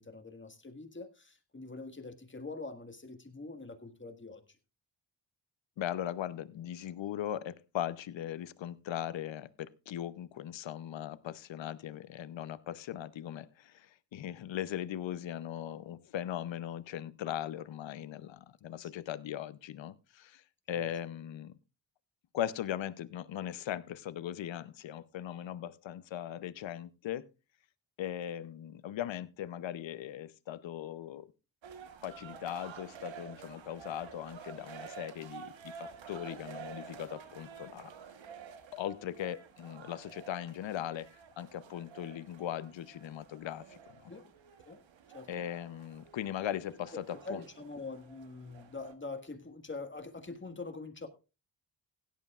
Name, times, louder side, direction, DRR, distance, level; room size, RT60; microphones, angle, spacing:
voice 1, 0.0-4.4 18.8-18.9 20.7-20.9 44.1-44.3 44.7-44.8 45.1-45.4 46.9-47.0 47.3-51.1, left 3 dB, 25° left, 1.7 m, -44 dB
voice 2, 5.8-20.4 20.7-21.5 22.3-27.3 28.0-31.3 32.0-37.9 38.7-41.1 41.4-44.1 45.3-47.4, left 11 dB, 80° left, 0.8 m, -39 dB
sound 1, 31.6-48.9, right 7 dB, 80° right, 1.3 m, -50 dB
16.5 x 11.5 x 2.4 m
cardioid pair, 60°, 45 cm